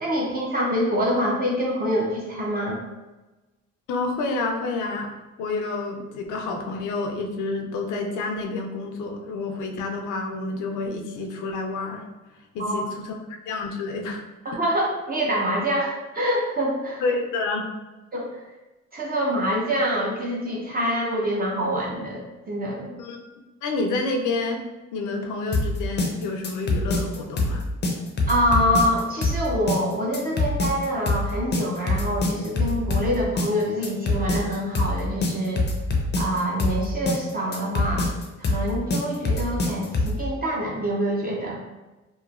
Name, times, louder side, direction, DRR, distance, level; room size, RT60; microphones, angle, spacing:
voice 1, 0.0-2.8 12.6-12.8 14.6-17.0 18.1-18.4 18.9-22.9 28.3-35.6 36.2-38.1 38.4-41.6, equal, 30° right, -4 dB, 0.6 m, -25 dB
voice 2, 3.9-5.1 5.4-12.0 12.5-13.1 13.5-14.2 17.0-17.7 23.0-23.2 23.6-24.6 24.9-27.6, left 3 dB, 80° left, 3 dB, 0.5 m, -29 dB
sound 1, 25.5-40.2, left 2 dB, 35° left, 0.5 m, -24 dB
2.9 x 2.1 x 2.4 m, 1.1 s
cardioid pair, 90°, 30 cm